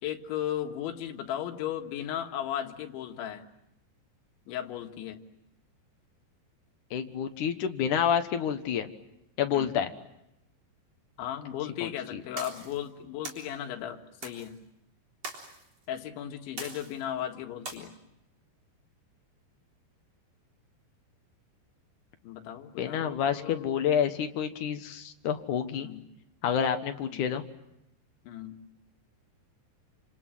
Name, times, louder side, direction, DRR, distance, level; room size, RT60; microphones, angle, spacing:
voice 1, 0.0-3.5 4.5-5.2 9.5-9.7 11.2-14.6 15.9-17.9 22.2-23.7 25.8-26.0 27.1-27.3 28.2-28.6, left 10 dB, 85° left, 4 dB, 4.1 m, -36 dB
voice 2, 6.9-8.9 9.4-9.9 11.8-12.2 22.8-25.9 26.4-27.4, left 8 dB, 65° left, 7 dB, 2.1 m, -28 dB
sound 1, 12.4-12.8 13.2-13.5 14.2-14.5 15.2-15.6 16.6-17.0 17.7-17.8, right 3 dB, 35° right, 4.5 m, -41 dB
29.0 x 27.0 x 7.5 m, 0.84 s
omnidirectional pair, 5.2 m